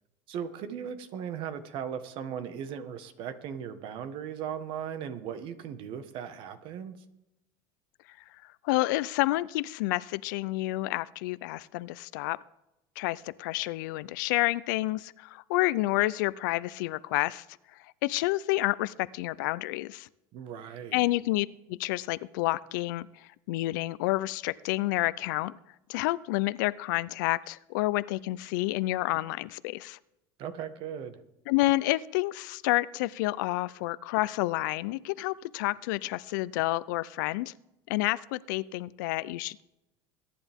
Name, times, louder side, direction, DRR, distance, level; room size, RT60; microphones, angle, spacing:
voice 1, 0.3-7.0 20.3-21.1 30.4-31.2, right 8 dB, 60° right, 10 dB, 1.5 m, -37 dB
voice 2, 8.6-12.4 13.0-17.4 18.0-20.1 20.9-23.1 23.5-25.5 25.9-30.0 31.5-37.5 37.9-39.6, left 19 dB, 85° left, 18 dB, 0.5 m, -29 dB
21.5 x 10.5 x 3.6 m, 0.89 s
supercardioid pair, 130°, 10 cm